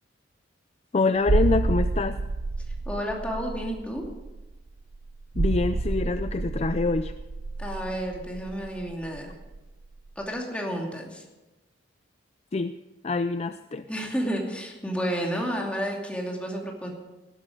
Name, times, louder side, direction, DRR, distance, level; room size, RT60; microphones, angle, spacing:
voice 1, 0.9-2.2 5.4-7.1 12.5-12.7 13.0-13.8, left 3 dB, 35° left, 10 dB, 0.4 m, -25 dB
sound 1, 1.2-9.7 9.9-10.1, right 3 dB, 80° right, 0.7 m, -29 dB
voice 2, 2.9-4.0 7.6-9.3 10.2-11.2 13.9-16.9, equal, 5° left, -1 dB, 2.6 m, -31 dB
18.0 x 12.0 x 5.1 m, 1.1 s
head